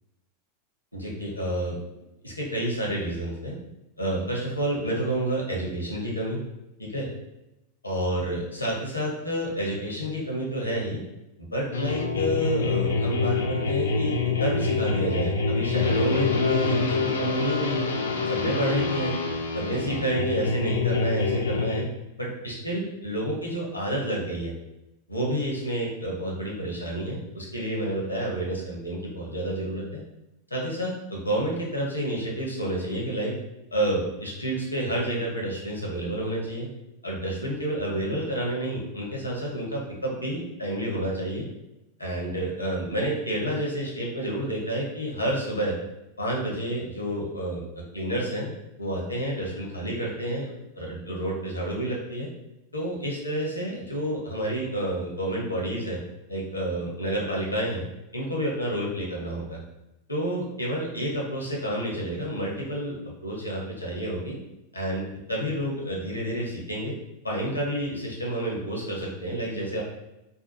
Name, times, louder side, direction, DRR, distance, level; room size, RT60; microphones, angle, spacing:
voice 1, 0.9-1.8 2.2-3.6 4.0-6.4 6.8-7.1 7.8-11.0 11.4-17.9 18.2-19.2 19.5-21.9 22.2-24.5 25.1-30.0 30.5-33.3 33.7-36.7 37.0-41.4 42.0-45.8 46.2-48.5 48.8-50.5 50.8-52.3 52.7-56.0 56.3-57.8 58.1-59.6 60.1-63.0 63.2-64.4 64.7-66.9 67.2-69.8, right 1 dB, 85° left, -2 dB, 0.7 m, -29 dB
sound 1, 11.7-21.8, left 4 dB, 65° left, 0.3 m, -26 dB
2.7 x 2.3 x 2.5 m, 0.91 s
figure-of-eight pair, 90°, 0 cm